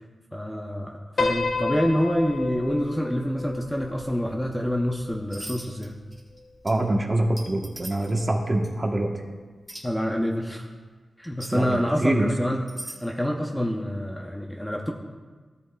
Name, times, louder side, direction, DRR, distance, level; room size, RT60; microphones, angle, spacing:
voice 1, 0.3-6.0 9.8-10.7 11.2-14.9, equal, 5° left, 0 dB, 0.6 m, -27 dB
Piano, 1.2-5.6, left 3 dB, 55° left, 0.9 m, -31 dB
sound 1, 5.3-5.9 6.1-6.4 6.7-6.8 7.4-8.2 8.6-8.7 9.7-9.8 11.2-11.5 12.5-13.0, right 1 dB, 10° right, 1.7 m, -39 dB
voice 2, 6.6-9.1 11.5-12.3, right 1 dB, 25° right, 2 dB, 1.0 m, -25 dB
16.0 x 8.0 x 2.3 m, 1.4 s
wide cardioid pair, 130°, 0 cm